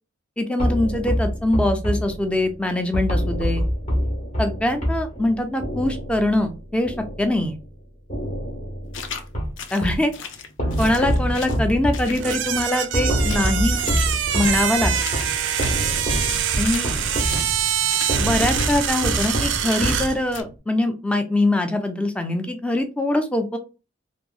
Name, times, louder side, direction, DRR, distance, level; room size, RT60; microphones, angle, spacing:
voice 1, 0.4-3.6 4.4-7.5 9.7-10.1 10.8-13.8 14.3-14.9 16.6-16.9 18.2-23.6, left 1 dB, 5° left, 6 dB, 0.4 m, -23 dB
sound 1, 0.6-7.7 8.1-10.1 10.6-20.5, equal, 40° left, 1.1 m, -26 dB
sound 2, 8.9-9.3 9.6-11.6 11.9-12.9 13.2-17.6 17.9-18.1 18.4-18.8 19.1-19.4 19.6-20.0 20.3-20.4, left 6 dB, 90° left, 0.5 m, -36 dB
sound 3, 12.2-20.2, right 10 dB, 85° right, 0.4 m, -25 dB
3.0 x 2.5 x 2.3 m, 0.31 s
head